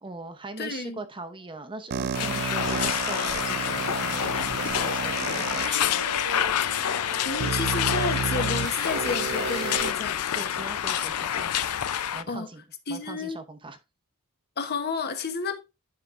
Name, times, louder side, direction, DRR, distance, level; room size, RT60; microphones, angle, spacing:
voice 1, 0.0-6.3 10.3-11.6 12.1-12.6 12.9-13.8, right 2 dB, 25° right, 0.8 m, -41 dB
voice 2, 0.6-1.0 7.2-10.2 12.3-12.5 12.9-13.4 14.6-15.6, left 4 dB, 45° left, 1.0 m, -31 dB
sound 1, 1.4-8.8, right 2 dB, 65° right, 1.2 m, -42 dB
sound 2, 1.9-5.7 6.4-6.5 7.4-9.9, right 6 dB, 45° right, 0.4 m, -31 dB
sound 3, 2.1-12.2, left 10 dB, 85° left, 0.5 m, -28 dB
10.0 x 4.9 x 2.5 m
head